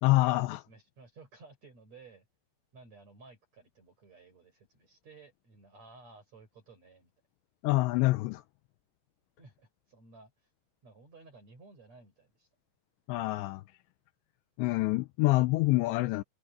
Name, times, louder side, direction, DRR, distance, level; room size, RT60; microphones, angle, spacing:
voice 1, 0.0-0.6 7.6-8.4 13.1-13.6 14.6-16.2, left 20 dB, 85° left, 2.7 m, -26 dB
voice 2, 0.7-2.3 2.7-7.1 9.4-10.5 10.8-12.5, right 3 dB, 35° right, 6.7 m, -55 dB
omnidirectional pair, 5.3 m